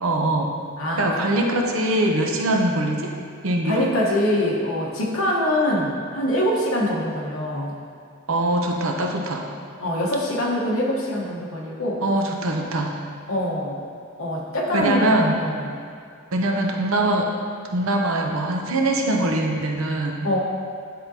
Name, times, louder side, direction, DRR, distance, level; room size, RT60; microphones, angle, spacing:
voice 1, 0.0-0.6 1.0-3.1 3.4-3.9 8.3-9.5 12.0-13.0 14.7-15.4 16.3-17.3 17.7-20.3, right 1 dB, 70° right, 1 dB, 0.7 m, -22 dB
voice 2, 3.6-7.7 9.8-12.0 13.3-13.8 14.2-15.7 20.2-20.4, left 1 dB, 70° left, -3 dB, 1.1 m, -24 dB
10.0 x 3.7 x 2.8 m, 2.3 s
head